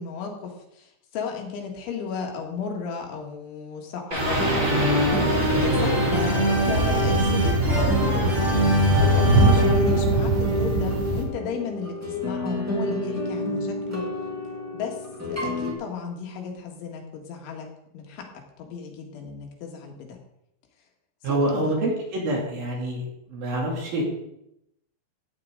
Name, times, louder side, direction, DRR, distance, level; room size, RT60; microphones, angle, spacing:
voice 1, 0.0-8.4 9.0-14.1 14.7-15.0 15.3-20.2 21.2-21.8, left 6 dB, 80° left, 1 dB, 4.2 m, -34 dB
sound 1, 4.1-11.1, left 1 dB, 20° right, 2.5 m, -24 dB
sound 2, 4.2-11.2, right 3 dB, 70° right, 1.5 m, -25 dB
sound 3, 4.4-15.7, left 1 dB, 5° right, 1.9 m, -29 dB
voice 2, 21.2-23.0 23.3-24.0, right 1 dB, 55° right, -2 dB, 4.5 m, -26 dB
16.0 x 9.3 x 3.9 m, 0.80 s
omnidirectional pair, 5.4 m